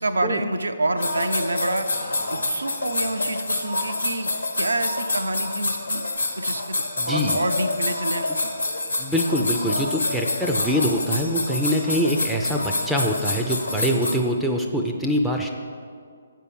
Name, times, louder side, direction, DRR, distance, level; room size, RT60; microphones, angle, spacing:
voice 1, 0.0-1.9 2.3-6.0 6.4-6.8 7.1-8.5 13.9-14.0, right 2 dB, 80° right, 8 dB, 0.6 m, -27 dB
sound 1, 1.0-14.2, left 2 dB, 85° left, 1.1 m, -27 dB
voice 2, 7.0-7.4 9.0-15.5, equal, 5° right, 1 dB, 0.5 m, -24 dB
8.0 x 4.5 x 7.1 m, 2.1 s
figure-of-eight pair, 140°, 0 cm